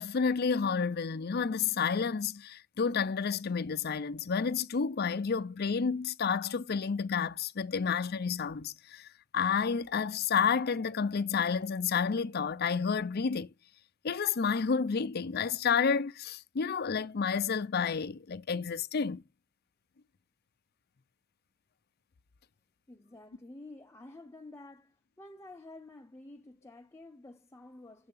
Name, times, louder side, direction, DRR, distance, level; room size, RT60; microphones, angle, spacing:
voice 1, 0.0-9.1 9.3-13.5 14.0-19.2, left 6 dB, 55° left, 0.5 m, -30 dB
voice 2, 22.9-28.1, left 2 dB, 15° left, 0.6 m, -50 dB
7.7 x 3.4 x 5.5 m
head